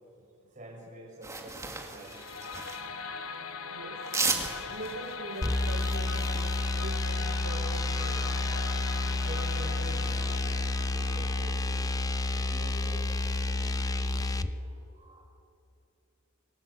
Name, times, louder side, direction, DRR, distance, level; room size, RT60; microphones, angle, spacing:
voice 1, 0.5-2.3 2.7-2.9 9.2-11.9 12.3-13.1 13.4-15.2, right 1 dB, 35° right, 0 dB, 6.3 m, -47 dB
sound 1, 1.2-2.9 4.0-6.6, right 3 dB, 15° right, 2.1 m, -35 dB
sound 2, 2.0-13.0, left 5 dB, 85° left, 1.4 m, -41 dB
voice 2, 3.7-8.3, right 2 dB, 75° right, 2 dB, 2.0 m, -43 dB
sound 3, 5.4-14.5, left 2 dB, 15° left, 0.6 m, -30 dB
29.0 x 18.0 x 8.4 m, 2.7 s
head